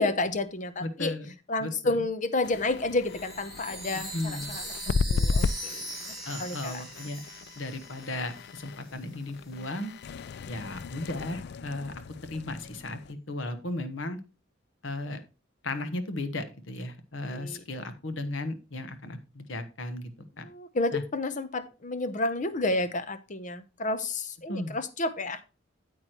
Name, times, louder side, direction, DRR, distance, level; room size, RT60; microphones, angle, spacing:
voice 1, 0.0-1.1 1.5-6.1 6.4-6.8 17.3-17.6 20.5-25.4, left 2 dB, 40° left, 12 dB, 0.8 m, -30 dB
voice 2, 0.8-1.3 1.6-2.0 4.1-4.5 6.2-7.2 7.5-9.9 10.5-11.9 12.3-14.2 14.8-15.2 15.6-20.1 20.4-20.5 20.9-21.0 24.5-24.7, left 2 dB, 75° left, 10 dB, 1.1 m, -35 dB
sound 1, 2.4-13.1, left 4 dB, 55° left, 0.3 m, -35 dB
Chime, 3.1-8.6, right 2 dB, ahead, 3.5 m, -41 dB
8.9 x 8.4 x 3.0 m, 0.30 s
head